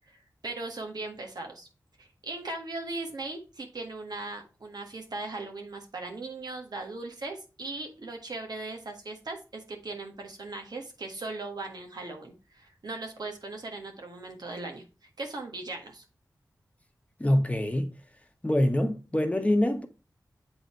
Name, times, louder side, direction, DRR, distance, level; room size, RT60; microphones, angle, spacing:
voice 1, 0.1-1.7 2.0-16.0, right 2 dB, 70° right, 1.6 m, -38 dB
voice 2, 17.2-17.9 18.4-19.9, left 1 dB, 20° left, 1.1 m, -25 dB
7.9 x 4.0 x 4.4 m
cardioid pair, 50°, 7 cm